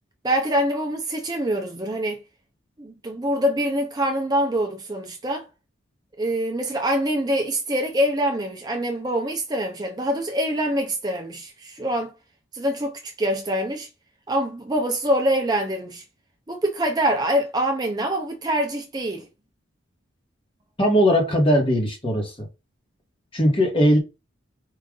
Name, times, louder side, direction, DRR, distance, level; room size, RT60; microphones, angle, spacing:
voice 1, 0.2-2.2 2.8-5.5 6.2-12.1 12.5-13.9 14.3-16.0 16.5-19.3, equal, 20° right, 0.5 m, -25 dB
voice 2, 20.8-22.5 23.3-24.0, equal, 25° left, 1.2 m, -19 dB
4.8 x 2.5 x 3.7 m
head